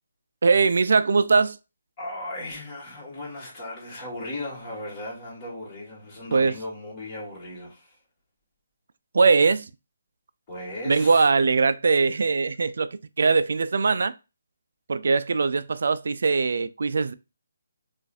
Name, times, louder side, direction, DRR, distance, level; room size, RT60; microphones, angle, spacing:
voice 1, 0.4-1.6 6.3-6.5 9.1-9.7 10.9-14.1 14.9-17.1, right 4 dB, 65° right, 0.3 m, -21 dB
voice 2, 2.0-8.0 10.5-11.3, left 1 dB, 25° left, 1.8 m, -36 dB
4.6 x 2.5 x 2.5 m
figure-of-eight pair, 150°, 0 cm